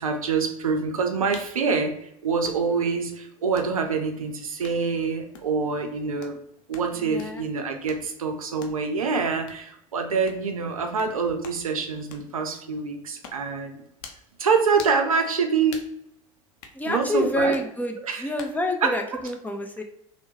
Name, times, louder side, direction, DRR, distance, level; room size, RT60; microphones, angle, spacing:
voice 1, 0.0-2.0 2.2-6.4 6.7-13.8 14.4-15.8 16.9-17.5 18.0-18.2 18.8-18.9, right 5 dB, 90° right, 5 dB, 0.5 m, -25 dB
sound 1, 1.3-1.5 2.4-2.6 3.5-3.7 4.6-4.8 5.3-5.5 6.2-6.4 6.7-6.9 7.2-7.4 7.9-8.0 8.6-8.8 9.5-9.6 10.3-10.4 11.0-11.1 11.4-11.6 12.1-12.3 13.2-13.5 14.0-14.3 14.8-15.0 15.7-15.9 16.6-16.8 17.5-17.7 18.4-18.6 19.3-19.4, left 6 dB, 60° left, 0.6 m, -43 dB
voice 2, 7.0-7.5 16.7-19.8, left 1 dB, 10° left, 3 dB, 0.5 m, -28 dB
3.5 x 2.1 x 2.8 m, 0.77 s
hypercardioid pair, 75°, 18 cm